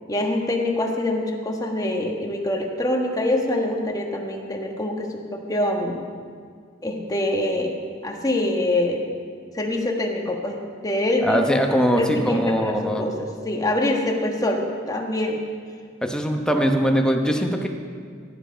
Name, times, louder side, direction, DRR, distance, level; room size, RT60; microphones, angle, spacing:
voice 1, 0.1-6.0 6.8-7.8 8.0-9.0 9.5-11.6 12.0-15.4, left 1 dB, 20° left, 2 dB, 1.4 m, -25 dB
voice 2, 11.2-13.0 16.0-17.7, equal, 5° left, 3 dB, 1.0 m, -21 dB
17.0 x 10.5 x 5.1 m, 2.1 s
head